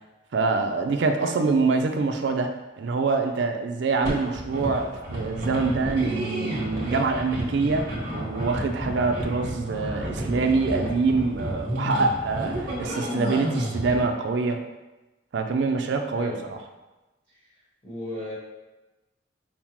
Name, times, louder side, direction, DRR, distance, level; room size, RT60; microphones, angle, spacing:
voice 1, 0.3-2.5 2.8-14.6 15.3-16.6, right 4 dB, 65° right, 5 dB, 0.4 m, -25 dB
sound 1, 4.0-14.1, equal, 50° right, 1.1 m, -31 dB
voice 2, 16.1-16.5 17.8-18.4, left 1 dB, 10° left, -11 dB, 1.2 m, -35 dB
5.3 x 2.1 x 2.9 m, 1.1 s
head